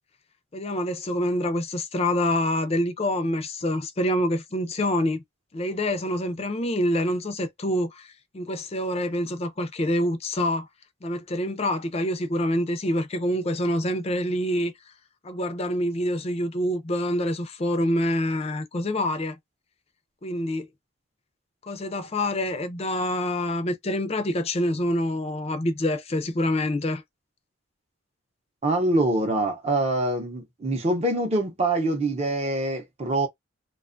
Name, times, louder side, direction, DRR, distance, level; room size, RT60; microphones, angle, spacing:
voice 1, 0.5-5.2 5.5-10.7 11.0-14.9 15.2-19.4 20.2-20.7 21.6-27.0, left 1 dB, 30° left, 0.4 m, -26 dB
voice 2, 28.6-33.3, right 2 dB, 30° right, 0.6 m, -24 dB
2.5 x 2.2 x 2.5 m
head